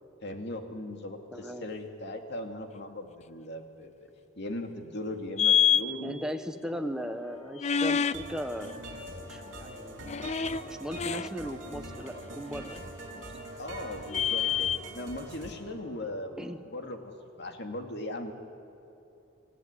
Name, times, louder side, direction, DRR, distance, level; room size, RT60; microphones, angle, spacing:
voice 1, 0.2-3.9 4.4-6.2 6.7-6.9 13.6-17.1 17.4-18.3, left 1 dB, 55° left, 4 dB, 2.4 m, -38 dB
voice 2, 1.3-1.7 6.0-8.8 9.2-10.1 10.6-13.2 16.0-16.6, equal, 5° right, 5 dB, 1.2 m, -38 dB
sound 1, 5.4-5.8 7.6-8.1 10.0-10.6 10.9-11.3 12.1-12.2 14.0-14.8, left 8 dB, 35° left, 0.4 m, -26 dB
sound 2, 7.2-16.6, equal, 15° left, 4.5 m, -54 dB
sound 3, 8.1-15.5, right 1 dB, 65° right, 4.4 m, -43 dB
26.0 x 16.5 x 9.9 m, 3.0 s
head